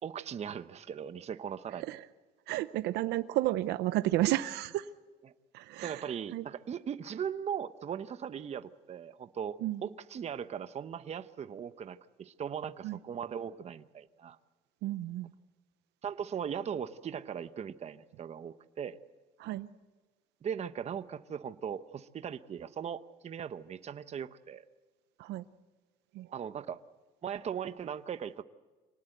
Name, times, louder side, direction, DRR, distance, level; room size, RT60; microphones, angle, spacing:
voice 1, 0.0-1.8 5.8-14.4 16.0-19.0 20.4-24.6 26.3-26.8 27.2-28.4, right 8 dB, 40° right, 11 dB, 0.9 m, -39 dB
voice 2, 1.7-2.1 2.5-4.9 5.5-6.5 9.6-9.8 12.8-13.0 14.8-15.3 19.4-19.7 25.2-25.4 26.1-26.3, right 15 dB, 85° right, 12 dB, 0.7 m, -32 dB
25.5 x 19.0 x 8.0 m, 1.3 s
cardioid pair, 110°, 17 cm